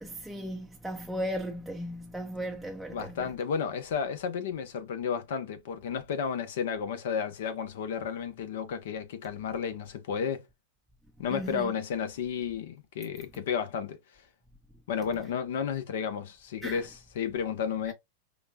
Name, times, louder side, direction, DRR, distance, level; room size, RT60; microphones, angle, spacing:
voice 1, 0.0-3.3 11.3-11.7 16.6-16.8 17.9-18.0, equal, 5° right, 0.5 m, -36 dB
voice 2, 2.9-10.4 11.2-14.0 14.9-17.9, left 7 dB, 65° left, 0.8 m, -32 dB
5.1 x 2.3 x 2.3 m
hypercardioid pair, 100°, 0 cm